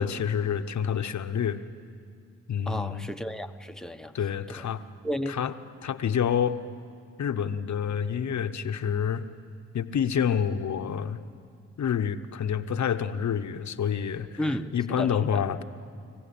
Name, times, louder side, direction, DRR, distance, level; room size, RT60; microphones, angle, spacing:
voice 1, 0.0-1.6 2.5-3.1 4.1-4.8 5.3-5.5 5.8-6.6 7.2-9.3 9.7-11.2 11.8-14.4 14.7-15.6, left 8 dB, 60° left, 10 dB, 1.1 m, -28 dB
voice 2, 2.7-4.2 5.0-5.4 14.4-15.4, left 1 dB, ahead, 7 dB, 1.1 m, -33 dB
24.5 x 15.0 x 8.6 m, 2.3 s
supercardioid pair, 45°, 32 cm